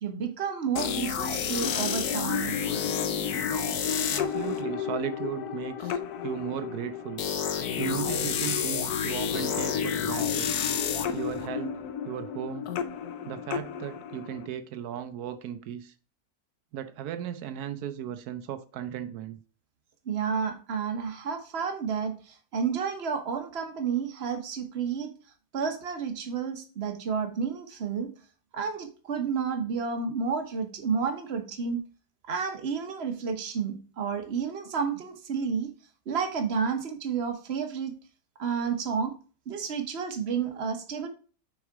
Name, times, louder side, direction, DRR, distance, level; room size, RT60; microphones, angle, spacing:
voice 1, 0.0-2.6 20.0-25.1 25.5-28.1 28.5-31.8 32.3-35.7 36.1-37.9 38.4-39.1 39.5-41.1, right 6 dB, 45° right, 1.3 m, -31 dB
sound 1, 0.8-14.5, left 7 dB, 90° left, 1.3 m, -30 dB
voice 2, 4.1-7.2 7.8-10.5 11.1-11.8 12.0-12.7 13.3-15.9 16.7-19.4, right 9 dB, 90° right, 1.2 m, -36 dB
6.2 x 4.9 x 4.7 m
omnidirectional pair, 1.6 m